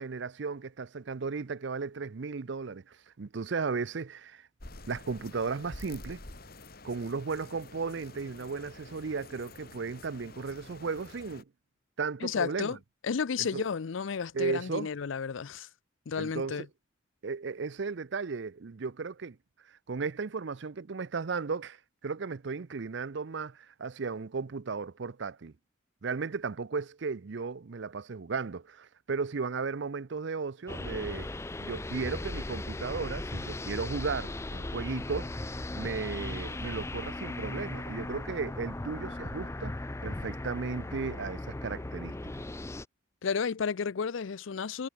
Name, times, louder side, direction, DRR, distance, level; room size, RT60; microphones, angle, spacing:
voice 1, 0.0-4.5 4.9-6.2 6.8-11.4 12.0-12.7 13.4-13.6 14.3-14.9 16.2-16.7 17.2-19.4 19.9-21.8 22.0-25.5 26.0-31.3 31.6-35.4 35.7-39.7 40.0-42.2, right 4 dB, 60° right, 0.5 m, -35 dB
sound 1, 4.6-11.4, left 2 dB, 45° left, 3.0 m, -49 dB
voice 2, 12.2-12.8 13.0-15.7 16.1-16.7 43.2-44.9, left 6 dB, 70° left, 0.5 m, -32 dB
sound 2, 30.7-42.8, left 2 dB, 15° left, 0.4 m, -37 dB
head